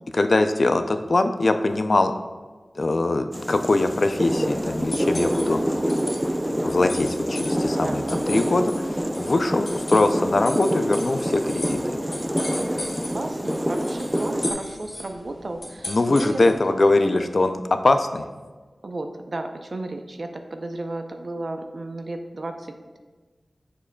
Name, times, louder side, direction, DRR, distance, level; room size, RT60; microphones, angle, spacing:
voice 1, 0.1-2.1 2.8-5.6 6.6-12.0 15.9-18.3, left 2 dB, 55° left, 8 dB, 0.4 m, -22 dB
sound 1, 3.3-14.5, equal, 10° right, 0.4 m, -26 dB
sound 2, 4.0-16.7, left 2 dB, 85° left, 1.8 m, -38 dB
voice 2, 7.8-8.2 9.3-9.6 13.1-16.4 16.7-17.3 18.8-23.0, right 2 dB, 60° right, 6 dB, 0.6 m, -33 dB
7.3 x 6.6 x 2.2 m, 1.4 s
wide cardioid pair, 60°, 0 cm